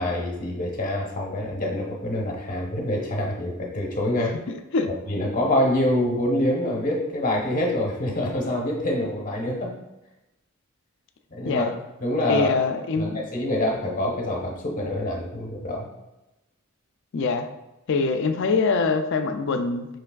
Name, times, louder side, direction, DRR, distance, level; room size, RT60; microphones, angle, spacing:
voice 1, 0.0-4.4 5.1-9.7 11.3-11.7 12.0-12.6 13.0-15.9, left 1 dB, 40° left, -2 dB, 0.9 m, -26 dB
voice 2, 12.3-13.2 17.1-17.5 17.9-19.9, left 4 dB, 60° left, 7 dB, 0.4 m, -24 dB
5.2 x 3.3 x 2.3 m, 0.94 s
head